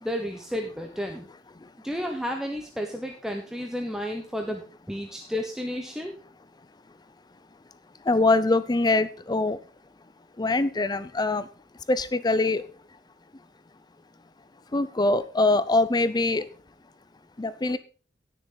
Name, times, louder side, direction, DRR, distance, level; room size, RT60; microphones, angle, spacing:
voice 1, 0.0-1.3 1.8-6.1, equal, 5° right, 3 dB, 1.1 m, -32 dB
voice 2, 8.1-9.6 10.4-11.4 11.9-12.6 14.7-16.4 17.4-17.8, left 2 dB, 25° left, 14 dB, 0.6 m, -23 dB
17.0 x 6.8 x 3.9 m, 0.37 s
head